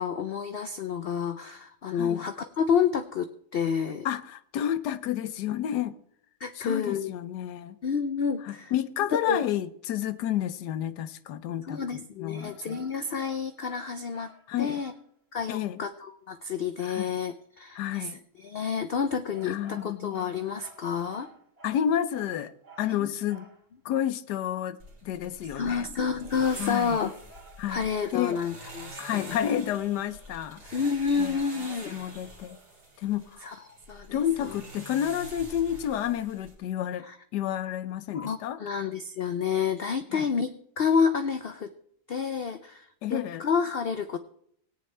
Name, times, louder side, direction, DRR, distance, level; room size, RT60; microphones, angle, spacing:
voice 1, 0.0-4.1 6.4-7.1 7.8-8.7 9.1-9.4 11.6-14.3 14.6-14.9 15.3-18.1 18.4-21.3 22.8-23.1 25.5-27.1 27.7-29.4 30.7-31.9 33.4-33.6 33.9-34.5 37.0-37.2 38.1-41.7 42.1-44.2, left 6 dB, 70° left, 0.5 m, -29 dB
voice 2, 1.9-2.3 4.0-6.0 6.6-7.8 8.5-12.9 14.5-14.8 15.5-15.8 16.8-17.1 17.7-18.2 19.4-20.3 21.6-22.5 22.8-23.5 23.8-24.8 25.0-25.9 26.6-27.0 27.6-28.4 29.0-30.8 31.2-31.4 31.9-32.6 33.0-33.4 34.1-37.1 37.3-38.6 40.1-40.3 43.0-43.4, left 10 dB, 90° left, 1.3 m, -30 dB
sound 1, 12.3-15.1 19.3-23.6 27.0-29.2, right 4 dB, 40° right, 2.2 m, -53 dB
sound 2, 24.8-36.5, right 1 dB, 80° right, 3.4 m, -46 dB
18.0 x 9.3 x 3.2 m
omnidirectional pair, 1.7 m